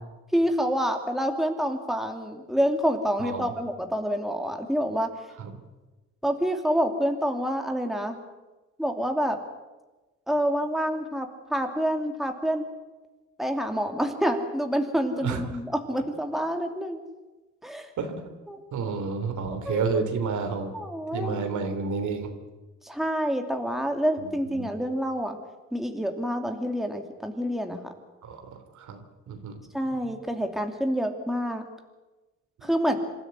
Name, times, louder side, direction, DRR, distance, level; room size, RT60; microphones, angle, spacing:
voice 1, 0.3-5.1 6.2-8.2 8.8-9.4 10.3-12.6 13.4-17.0 17.6-17.9 18.5-18.9 19.7-19.8 20.7-21.5 22.8-25.4 25.7-27.9 29.7-31.7 32.6-33.0, equal, ahead, 4 dB, 2.7 m, -27 dB
voice 2, 3.2-3.5 5.4-5.5 15.1-15.4 18.0-18.2 18.7-20.7 21.1-22.3 24.5-24.8 28.2-29.6 30.0-30.2 32.6-32.7, right 5 dB, 75° right, 6 dB, 3.4 m, -30 dB
27.0 x 13.0 x 9.6 m, 1.2 s
cardioid pair, 90°, 30 cm